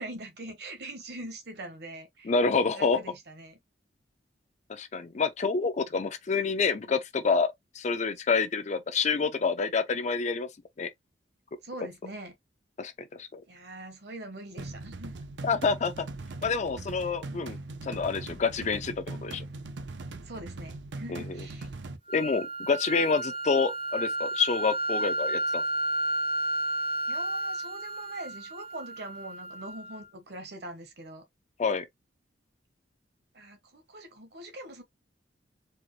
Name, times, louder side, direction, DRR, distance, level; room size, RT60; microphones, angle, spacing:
voice 1, 0.0-2.3 2.7-3.6 11.6-12.3 13.5-15.1 20.3-21.7 27.1-31.2 33.3-34.8, right 1 dB, 65° right, 1.1 m, -42 dB
voice 2, 2.2-3.0 4.7-10.5 10.8-10.9 12.8-13.4 15.4-16.1 16.4-19.4 21.1-21.2 22.1-25.6 31.6-31.9, left 4 dB, 40° left, 0.5 m, -28 dB
sound 1, 14.6-22.0, right 2 dB, 80° right, 0.6 m, -40 dB
sound 2, 22.1-30.1, right 1 dB, 30° right, 0.7 m, -32 dB
4.3 x 2.2 x 3.1 m
head